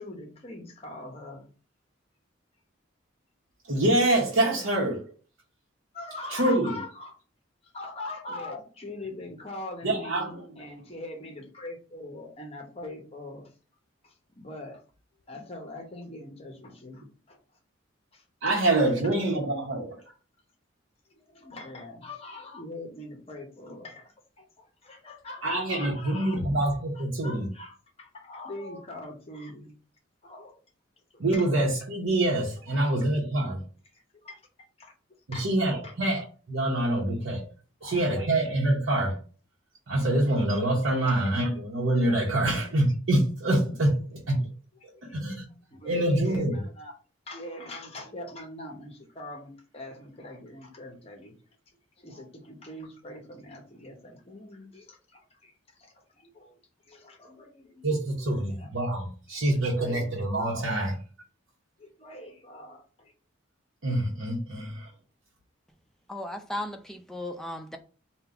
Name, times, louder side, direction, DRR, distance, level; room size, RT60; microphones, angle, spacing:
voice 1, 0.0-1.5 5.9-7.1 7.6-13.5 14.0-14.8 15.3-17.4 18.1-18.6 19.0-19.2 21.1-26.4 26.9-29.8 30.2-30.6 31.1-31.5 32.7-32.9 33.9-34.4 34.8-35.5 35.8-35.9 37.1-37.2 37.8-38.3 41.1-41.2 44.9-45.0 45.7-47.0 47.3-51.5 52.0-56.6 56.8-58.0 58.5-58.7 59.3-60.1 61.8-63.1, left 2 dB, 30° left, 0.8 m, -43 dB
voice 2, 3.7-5.0 6.3-6.8 9.8-10.4 18.4-20.0 25.4-27.5 31.2-33.6 35.3-37.4 37.8-39.2 39.9-44.5 44.8-45.4 45.8-46.6 57.8-61.0 63.8-64.9, right 1 dB, 75° right, 0.9 m, -26 dB
voice 3, 66.1-67.8, left 1 dB, ahead, 0.4 m, -36 dB
3.8 x 2.3 x 4.4 m
head